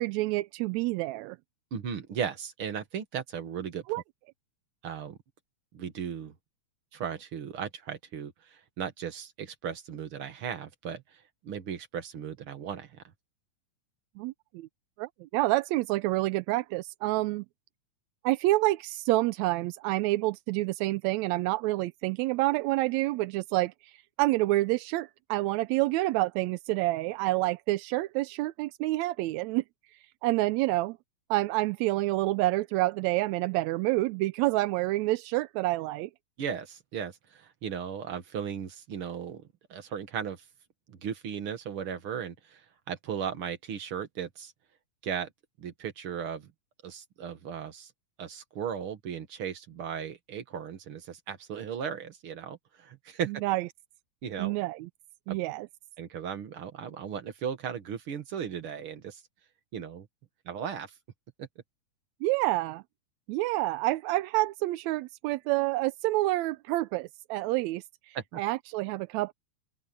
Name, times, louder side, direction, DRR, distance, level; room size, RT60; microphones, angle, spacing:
voice 1, 0.0-1.4 3.9-4.0 14.2-14.7 15.0-17.4 18.2-23.9 24.2-29.6 30.2-31.0 31.3-36.1 53.3-53.7 54.4-54.9 55.3-55.7 62.2-62.8 63.3-69.3, right 19 dB, 80° right, 1.7 m, -28 dB
voice 2, 1.7-3.9 4.8-5.2 5.7-6.3 6.9-13.0 36.4-39.4 39.7-40.4 40.9-44.5 45.0-45.3 45.6-46.5 46.8-47.9 48.2-53.3 54.2-54.6 55.3-55.4 56.0-59.2 59.7-60.1 60.5-60.9 61.4-61.5 68.1-68.4, right 8 dB, 50° right, 2.2 m, -36 dB
open air
omnidirectional pair, 3.5 m